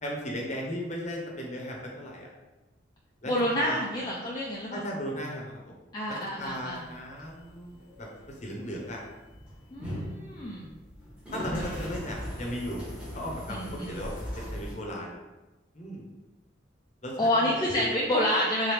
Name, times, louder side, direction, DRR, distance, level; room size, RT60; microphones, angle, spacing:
voice 1, 0.0-2.3 3.2-3.8 4.7-5.8 6.1-9.0 11.3-12.8 13.1-15.2 15.7-16.1 17.0-18.0, equal, 35° left, -1 dB, 0.8 m, -36 dB
voice 2, 3.3-4.8 5.9-6.8 9.7-10.7 11.5-11.6 13.5-14.0 17.2-18.7, left 1 dB, 20° left, -4 dB, 0.4 m, -28 dB
sound 1, 6.4-14.7, equal, 5° right, 1.1 m, -40 dB
3.5 x 3.3 x 3.4 m, 1.1 s
head